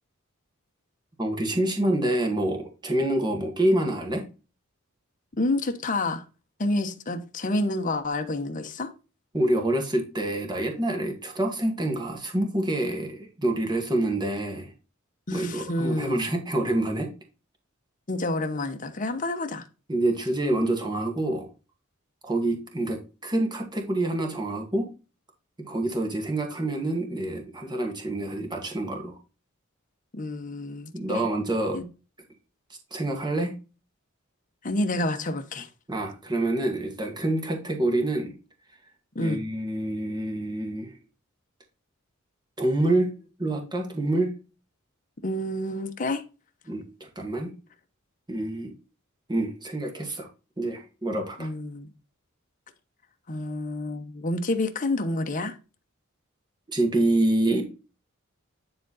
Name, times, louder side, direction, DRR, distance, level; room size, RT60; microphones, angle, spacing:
voice 1, 1.2-4.2 9.3-14.7 15.3-17.1 19.9-21.5 22.2-24.9 25.6-29.1 30.9-31.8 32.9-33.5 35.9-38.3 39.2-40.9 42.6-43.1 43.4-44.3 46.7-47.5 48.3-48.7 49.3-50.3 50.6-51.5 56.7-57.6, right 1 dB, 20° right, 1.9 m, -27 dB
voice 2, 5.4-6.3 6.6-8.9 15.3-16.2 18.1-19.7 30.1-31.2 31.7-31.8 34.6-35.7 39.1-39.4 45.2-46.2 51.4-51.9 53.3-55.6, left 2 dB, 40° left, 1.0 m, -29 dB
10.0 x 3.8 x 4.1 m
head